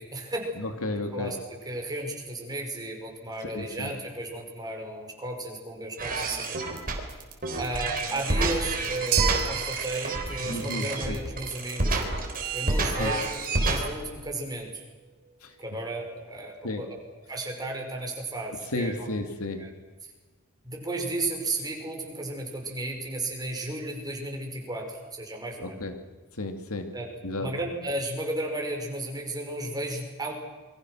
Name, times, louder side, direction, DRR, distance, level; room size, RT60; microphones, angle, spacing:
voice 1, 0.0-0.4 1.1-1.4 1.6-6.6 7.6-12.0 12.5-14.8 15.6-16.9 17.3-19.1 19.6-19.7 20.6-25.8 26.9-27.1 27.4-30.3, right 2 dB, 20° right, 2 dB, 5.4 m, -34 dB
voice 2, 0.6-1.4 3.5-3.9 10.5-11.2 13.0-13.1 15.4-15.6 16.6-16.9 18.7-19.7 25.6-26.0 26.3-26.9 27.2-27.5, left 2 dB, 75° left, 6 dB, 2.4 m, -33 dB
sound 1, 6.0-13.9, right 2 dB, 40° right, 4.0 m, -28 dB
sound 2, 9.1-17.5, right 10 dB, 85° right, 2.8 m, -37 dB
28.0 x 23.5 x 6.3 m, 1.3 s
head